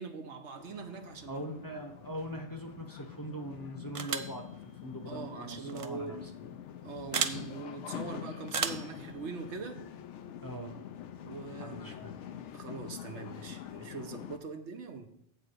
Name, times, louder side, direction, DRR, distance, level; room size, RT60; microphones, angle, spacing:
voice 1, 0.0-1.4 5.1-6.2 6.8-9.9 11.2-12.0 12.5-15.1, right 5 dB, 75° right, 5 dB, 1.2 m, -42 dB
sound 1, 0.6-14.4, left 9 dB, 80° left, 0.9 m, -45 dB
voice 2, 1.3-4.5 4.8-6.3 10.4-10.8 11.6-12.1, right 1 dB, 20° left, 3 dB, 0.8 m, -41 dB
sound 2, 3.9-4.4 5.7-5.9 7.1-7.4 8.5-8.9, right 6 dB, 50° right, 0.4 m, -32 dB
7.9 x 4.6 x 6.6 m, 0.72 s
omnidirectional pair, 1.2 m